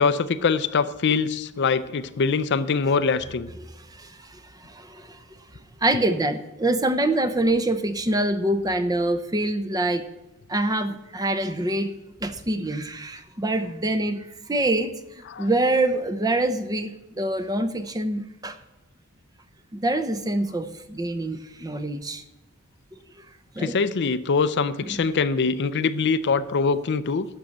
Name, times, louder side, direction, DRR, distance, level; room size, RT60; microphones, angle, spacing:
voice 1, 0.0-3.5 15.3-15.5 23.6-27.3, left 5 dB, 50° left, 14 dB, 0.5 m, -23 dB
voice 2, 3.6-5.2 5.8-10.0 10.5-11.9 12.2-18.6 19.7-22.2 22.9-23.0 23.6-23.8 24.8-25.0, right 1 dB, 15° right, 10 dB, 0.7 m, -25 dB
11.5 x 6.4 x 7.1 m, 0.96 s
head